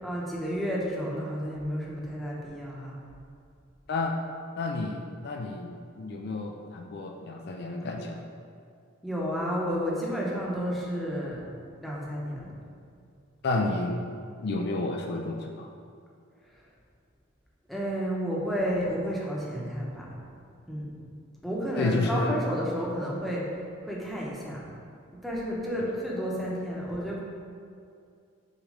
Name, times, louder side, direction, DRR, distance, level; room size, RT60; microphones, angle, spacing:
voice 1, 0.0-3.0 9.0-11.4 11.8-12.5 17.7-20.1 20.7-20.9 21.4-23.5 23.8-24.6 25.1-27.2, equal, ahead, -5 dB, 0.9 m, -31 dB
voice 2, 4.6-8.2 13.4-14.0 14.4-15.7 21.8-22.4, left 2 dB, 55° left, 2 dB, 0.4 m, -30 dB
6.3 x 3.1 x 5.0 m, 2.3 s
head